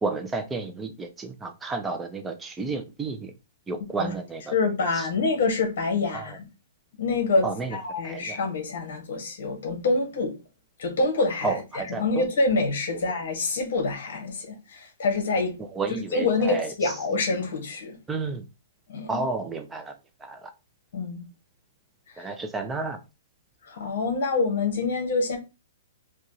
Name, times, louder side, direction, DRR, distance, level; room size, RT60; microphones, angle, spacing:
voice 1, 0.0-3.3 3.7-4.5 4.9-5.1 6.1-6.3 7.4-7.8 8.0-8.4 11.4-12.2 15.8-16.7 18.1-18.4 19.1-19.9 20.2-20.5 22.2-23.0, right 3 dB, 10° right, 0.6 m, -31 dB
voice 2, 4.5-6.4 7.0-10.4 10.8-15.6 15.9-18.0 18.9-19.2 20.9-21.2 22.2-22.3 23.6-25.4, left 3 dB, 55° left, 1.8 m, -26 dB
4.8 x 2.5 x 3.1 m
hypercardioid pair, 150°, 0 cm